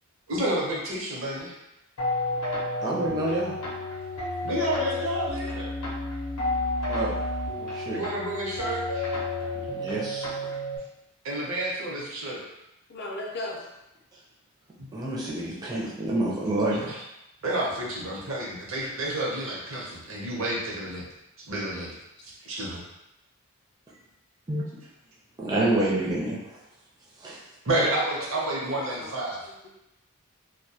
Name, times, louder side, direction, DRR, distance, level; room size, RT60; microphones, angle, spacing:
voice 1, 0.3-1.5 4.4-5.7 7.9-9.2 11.2-12.4 14.8-14.9 16.7-16.9 17.4-21.0 21.5-22.0 22.4-22.8 27.7-29.4, right 1 dB, 60° right, -4 dB, 0.6 m, -30 dB
sound 1, 2.0-10.8, left 2 dB, 90° left, 0.6 m, -31 dB
voice 2, 2.8-3.5 6.9-7.2 7.6-8.0 9.7-10.3 14.9-17.0 24.5-24.6 25.4-26.6 27.2-27.4, right 1 dB, 15° right, -5 dB, 0.4 m, -28 dB
voice 3, 12.9-13.6 28.1-29.2, left 1 dB, 45° left, -1 dB, 0.4 m, -37 dB
2.1 x 2.1 x 2.7 m, 0.90 s
head